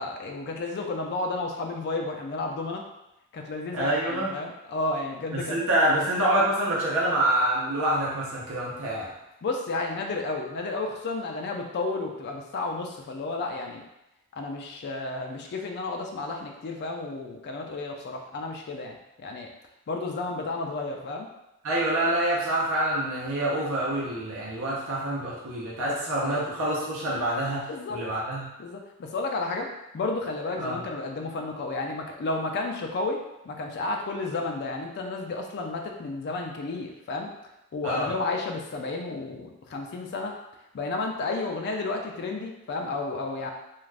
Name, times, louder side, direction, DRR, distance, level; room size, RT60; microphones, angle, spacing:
voice 1, 0.0-2.8 3.3-5.6 5.9-6.0 9.4-13.8 14.4-19.5 19.9-21.3 25.9-26.0 26.2-26.5 27.7-28.0 28.6-29.7 29.9-33.2 33.5-37.3 37.7-40.3 40.7-43.5, left 3 dB, 50° left, 2 dB, 0.4 m, -32 dB
voice 2, 3.7-4.3 5.3-9.1 21.6-28.5 30.6-30.8 37.8-38.1, right 1 dB, 65° right, -6 dB, 0.8 m, -26 dB
2.4 x 2.4 x 3.2 m, 0.88 s
head